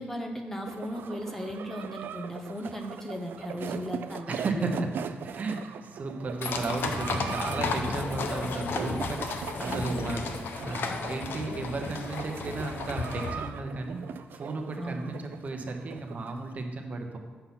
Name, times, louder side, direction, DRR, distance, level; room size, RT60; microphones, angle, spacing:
voice 1, 0.0-4.8 9.6-10.0 14.8-15.1, equal, 10° left, 3 dB, 0.6 m, -36 dB
sound 1, 0.6-16.4, right 7 dB, 70° right, 0.3 m, -40 dB
voice 2, 4.3-17.2, right 3 dB, 45° right, 4 dB, 0.9 m, -34 dB
sound 2, 6.4-13.3, left 4 dB, 75° left, 0.7 m, -33 dB
6.8 x 5.7 x 5.8 m, 1.4 s
wide cardioid pair, 150°, 4 cm